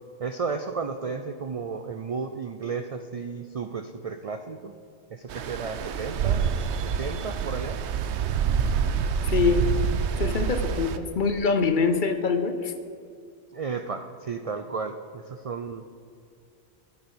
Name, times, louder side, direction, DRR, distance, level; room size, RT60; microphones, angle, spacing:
voice 1, 0.2-4.7 5.1-7.8 13.5-15.9, right 5 dB, 55° right, 8 dB, 0.4 m, -33 dB
Stream, 5.3-11.0, right 7 dB, 80° right, 0.9 m, -27 dB
voice 2, 9.3-9.7 10.2-12.7, left 5 dB, 50° left, 8 dB, 0.8 m, -24 dB
9.7 x 6.9 x 7.2 m, 2.4 s
omnidirectional pair, 1.2 m